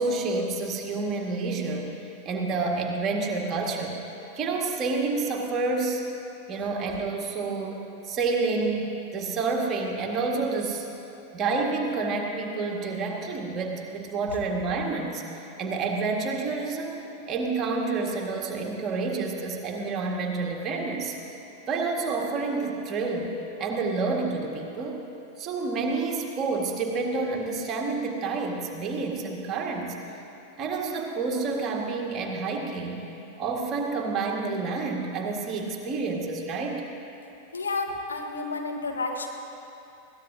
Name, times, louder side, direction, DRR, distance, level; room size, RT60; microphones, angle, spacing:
voice 1, 0.0-4.0 4.4-6.0 6.5-10.8 11.3-17.0 17.3-21.2 21.7-23.3 23.6-25.0 25.4-30.0 30.6-33.1 33.4-36.8, right 3 dB, 30° right, 0 dB, 1.8 m, -29 dB
voice 2, 37.5-39.3, left 3 dB, 75° left, 2 dB, 1.3 m, -31 dB
21.5 x 17.0 x 2.8 m, 2.8 s
figure-of-eight pair, 90°, 0 cm